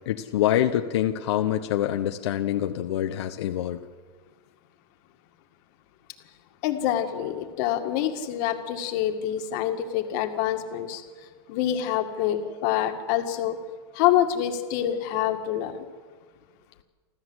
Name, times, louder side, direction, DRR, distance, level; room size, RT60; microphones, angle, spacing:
voice 1, 0.1-3.8, left 12 dB, 75° left, 6 dB, 1.0 m, -25 dB
voice 2, 6.6-11.0 11.5-13.6 13.9-15.7, left 11 dB, 45° left, 6 dB, 2.1 m, -26 dB
29.0 x 13.0 x 8.1 m, 1.5 s
supercardioid pair, 165°, 14 cm